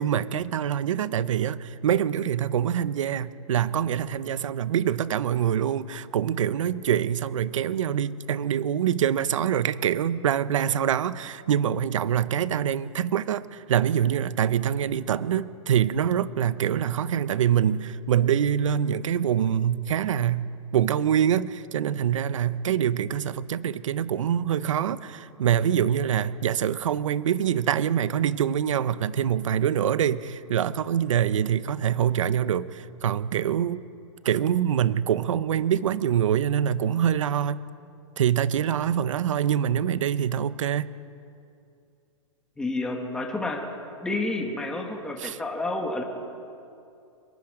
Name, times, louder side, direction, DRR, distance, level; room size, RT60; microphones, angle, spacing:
voice 1, 0.0-33.8 34.2-37.6 38.2-40.9 45.2-45.4, right 9 dB, 75° right, 15 dB, 0.9 m, -25 dB
voice 2, 42.6-43.6 44.0-46.0, left 2 dB, 5° left, 1 dB, 1.8 m, -29 dB
25.5 x 23.0 x 5.1 m, 2.5 s
hypercardioid pair, 160°, 17 cm